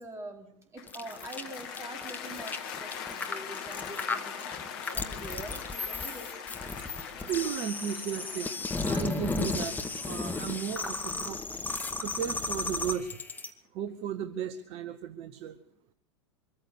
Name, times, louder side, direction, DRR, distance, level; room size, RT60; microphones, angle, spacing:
voice 1, 0.0-4.6 4.9-6.4, right 1 dB, 20° right, 6 dB, 3.9 m, -45 dB
Cheering / Applause, 0.8-13.0, left 7 dB, 50° left, 2.6 m, -42 dB
sound 1, 0.9-13.5, left 3 dB, 10° left, 2.1 m, -34 dB
voice 2, 7.3-8.5 8.9-9.8 10.0-11.4 12.0-13.2 13.7-15.6, right 9 dB, 40° right, 12 dB, 1.1 m, -35 dB
24.5 x 14.5 x 8.1 m, 0.65 s
figure-of-eight pair, 85°, 15 cm